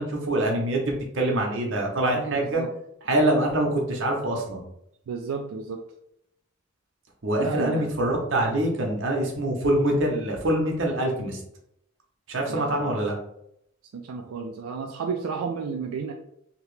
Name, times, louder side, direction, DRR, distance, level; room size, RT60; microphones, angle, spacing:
voice 1, 0.0-2.6 3.0-4.6 7.2-11.4 12.3-13.1, right 1 dB, 60° right, 0 dB, 0.8 m, -25 dB
voice 2, 2.1-2.7 5.1-5.8 7.4-7.9 12.5-12.9 13.9-16.1, right 5 dB, 90° right, 3 dB, 0.4 m, -32 dB
2.9 x 2.9 x 3.2 m, 0.77 s
head